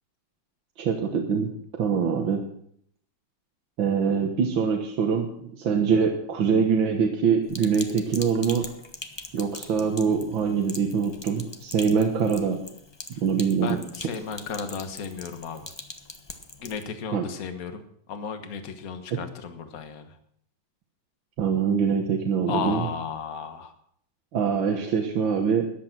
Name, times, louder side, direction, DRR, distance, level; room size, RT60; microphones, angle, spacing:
voice 1, 0.8-1.5 1.8-2.4 3.8-8.7 9.3-12.6 13.1-13.8 17.1-17.2 19.1-19.3 21.4-22.9 24.3-25.8, right 6 dB, 80° right, 3 dB, 2.1 m, -24 dB
Sink (filling or washing), 7.5-16.8, left 2 dB, 20° left, 0.8 m, -42 dB
voice 2, 13.6-15.7 16.6-17.8 18.1-20.1 22.5-23.7, left 6 dB, 50° left, 7 dB, 1.7 m, -34 dB
14.0 x 10.5 x 6.0 m, 0.67 s
omnidirectional pair, 2.1 m